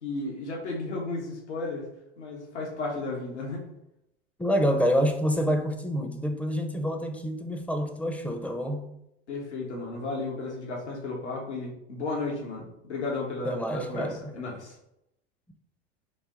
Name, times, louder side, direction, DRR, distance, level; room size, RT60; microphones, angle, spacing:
voice 1, 0.0-1.9 2.2-3.7 9.3-14.7, left 3 dB, 90° left, 1.3 m, -34 dB
voice 2, 4.4-8.9 13.4-14.2, equal, 5° left, 0.5 m, -27 dB
4.8 x 2.6 x 3.7 m
hypercardioid pair, 95°, 33 cm